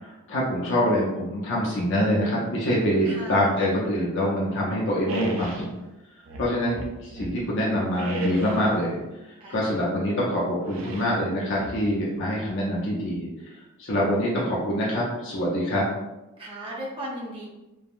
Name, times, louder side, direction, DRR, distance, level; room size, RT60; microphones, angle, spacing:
voice 1, 0.0-5.7 6.4-9.0 9.5-13.3 13.8-15.8, equal, 55° left, -5 dB, 0.6 m, -25 dB
voice 2, 3.0-3.5 9.4-9.9 16.4-17.5, right 1 dB, 25° right, -5 dB, 0.6 m, -36 dB
sound 1, 5.1-5.7 6.3-7.4 7.9-8.8 10.7-11.1 11.6-12.2, right 2 dB, 65° right, 0.4 m, -35 dB
3.4 x 2.1 x 2.4 m, 1.0 s
head